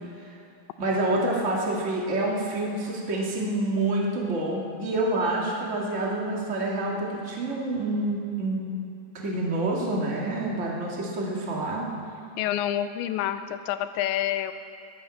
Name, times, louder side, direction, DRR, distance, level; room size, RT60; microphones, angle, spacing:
voice 1, 0.8-8.6 9.1-11.9, right 2 dB, 85° right, -3 dB, 0.6 m, -27 dB
voice 2, 12.4-14.5, left 11 dB, 90° left, 10 dB, 2.9 m, -28 dB
19.0 x 11.5 x 6.3 m, 2.7 s
omnidirectional pair, 5.2 m